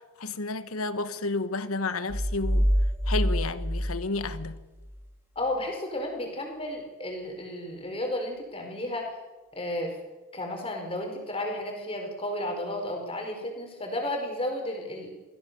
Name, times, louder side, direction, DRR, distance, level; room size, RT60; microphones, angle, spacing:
voice 1, 0.2-2.7 3.1-4.6, left 3 dB, 85° left, 1.2 m, -31 dB
sound 1, 2.1-5.0, equal, 10° right, 2.1 m, -26 dB
voice 2, 5.3-9.1 9.5-9.9 10.3-15.1, left 1 dB, 25° left, 4.9 m, -33 dB
22.5 x 16.5 x 6.9 m
head